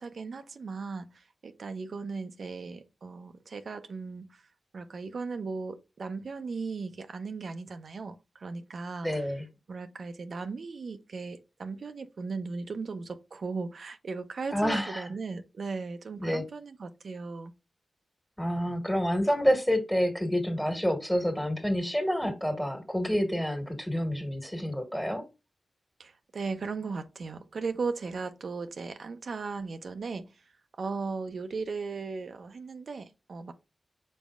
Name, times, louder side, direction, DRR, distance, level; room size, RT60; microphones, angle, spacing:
voice 1, 0.0-4.5 4.7-9.3 9.7-17.5 26.0-30.4 30.8-33.5, right 4 dB, 70° right, 0.5 m, -37 dB
voice 2, 9.0-9.4 14.5-15.1 16.2-16.4 18.4-25.2, equal, 10° left, 1.5 m, -28 dB
5.3 x 4.1 x 2.4 m
cardioid pair, 50°, 0 cm